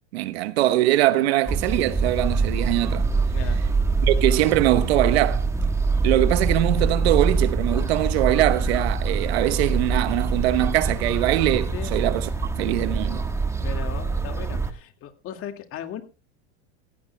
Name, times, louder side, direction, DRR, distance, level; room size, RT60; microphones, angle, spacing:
voice 1, 0.1-3.1 4.1-5.5 6.0-12.3 12.5-13.2, right 15 dB, 70° right, 1.1 m, -22 dB
sound 1, 1.5-14.7, right 4 dB, 10° right, 1.4 m, -24 dB
voice 2, 11.7-12.1 13.6-16.0, left 10 dB, 40° left, 2.1 m, -37 dB
16.5 x 15.5 x 2.2 m
hypercardioid pair, 105°, 33 cm